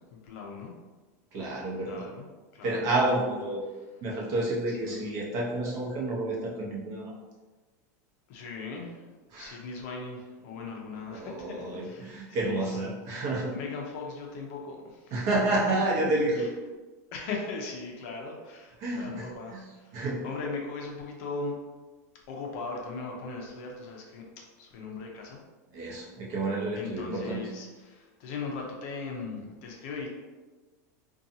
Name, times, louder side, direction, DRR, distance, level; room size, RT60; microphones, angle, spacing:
voice 1, 0.1-0.7 1.9-2.3 2.5-2.9 4.7-5.1 8.3-12.9 13.5-15.1 15.5-15.7 16.4-16.5 17.1-19.9 20.2-21.6 22.3-24.3 24.6-25.4 26.7-30.1, left 4 dB, 50° left, 0 dB, 0.5 m, -39 dB
voice 2, 1.3-2.0 2.6-3.6 4.0-7.1 9.3-9.6 11.1-13.5 15.1-16.5 18.8-19.6 19.9-20.2 25.7-27.5, right 2 dB, 35° right, -4 dB, 0.7 m, -30 dB
2.6 x 2.3 x 2.7 m, 1.3 s
supercardioid pair, 160°, 9 cm